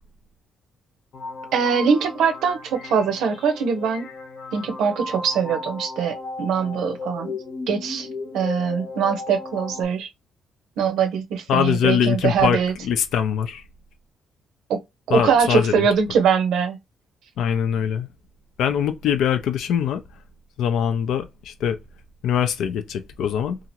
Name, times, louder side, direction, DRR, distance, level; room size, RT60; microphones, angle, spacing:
sound 1, 1.1-9.8, left 3 dB, 60° left, 0.8 m, -35 dB
voice 1, 1.5-4.1 4.5-7.4 7.7-8.1 8.3-10.1 10.8-12.7 14.7-14.8 15.1-16.8, right 6 dB, 80° right, 0.7 m, -22 dB
voice 2, 11.5-12.6 12.8-13.6 15.1-15.9 17.4-18.1 18.6-20.0 20.6-21.8 22.2-23.6, left 8 dB, 80° left, 0.4 m, -22 dB
2.8 x 2.5 x 2.8 m
cardioid pair, 90°, 0 cm